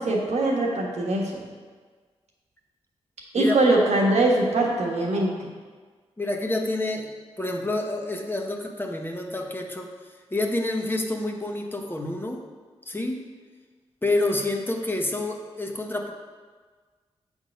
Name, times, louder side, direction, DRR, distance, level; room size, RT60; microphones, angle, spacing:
voice 1, 0.0-1.5 3.3-5.5, right 2 dB, 80° right, -3 dB, 1.3 m, -22 dB
voice 2, 3.4-3.8 6.2-9.9 10.3-12.5 12.9-13.3 14.0-16.1, left 2 dB, 20° left, 2 dB, 0.8 m, -28 dB
7.6 x 3.7 x 5.2 m, 1.5 s
cardioid pair, 60°, 11 cm